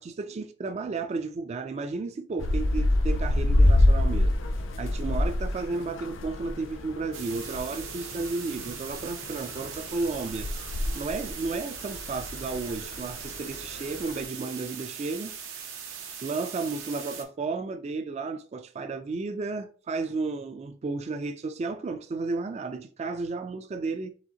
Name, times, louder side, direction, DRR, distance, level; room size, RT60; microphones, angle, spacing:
voice 1, 0.0-4.4 4.8-15.3 16.2-24.1, right 3 dB, 35° right, 0.3 m, -33 dB
sound 1, 2.4-14.2, left 1 dB, 75° left, 0.5 m, -27 dB
sound 2, 7.1-17.2, right 7 dB, 90° right, 0.9 m, -40 dB
4.9 x 3.4 x 2.8 m
head